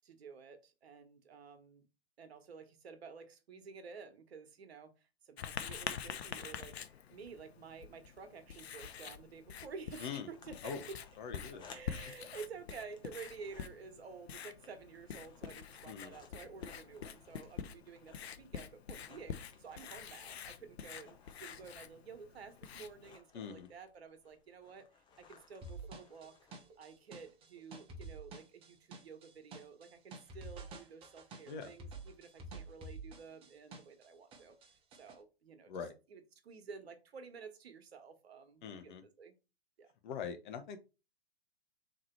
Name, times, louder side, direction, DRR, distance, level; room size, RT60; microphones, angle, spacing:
voice 1, 0.0-1.9 2.2-4.9 5.2-6.8 7.1-11.0 11.7-26.3 26.8-35.7 36.1-39.4 39.8-39.9, right 5 dB, 75° right, 1.2 m, -51 dB
Writing, 5.4-23.2, left 8 dB, 75° left, 0.7 m, -47 dB
sound 1, 8.2-27.0, left 5 dB, 15° left, 0.6 m, -63 dB
voice 2, 11.2-11.7 15.9-16.1 23.3-23.7 31.5-31.7 35.7-35.9 38.6-39.0 40.0-40.8, left 6 dB, 50° left, 1.0 m, -43 dB
sound 2, 25.6-34.1 34.3-35.2, right 3 dB, 15° right, 0.7 m, -49 dB
3.8 x 3.2 x 4.4 m
hypercardioid pair, 130°, 32 cm